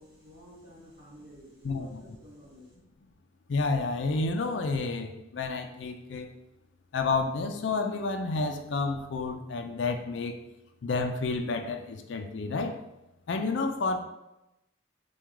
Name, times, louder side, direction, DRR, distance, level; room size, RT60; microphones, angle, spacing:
voice 1, 0.0-2.7, equal, 45° right, -11 dB, 1.5 m, -51 dB
voice 2, 1.6-2.0 3.5-6.3 6.9-10.4 10.8-12.8 13.3-14.0, left 3 dB, 70° left, 6 dB, 0.4 m, -30 dB
4.7 x 2.3 x 3.5 m, 0.91 s
head